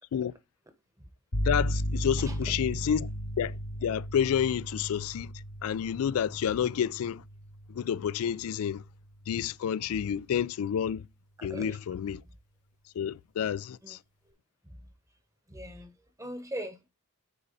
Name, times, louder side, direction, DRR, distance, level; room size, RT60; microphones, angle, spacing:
sound 1, 1.3-9.0, equal, 90° left, 1.9 m, -35 dB
voice 1, 1.4-5.3 5.6-7.2 7.7-8.8 9.3-11.1 11.4-12.2 12.9-14.0, left 8 dB, 70° left, 0.3 m, -30 dB
voice 2, 2.2-2.5 11.4-11.8 13.8-13.9 14.3-14.4 14.6-14.8 15.5-16.9, right 1 dB, 15° right, 1.1 m, -41 dB
9.8 x 4.1 x 4.1 m
head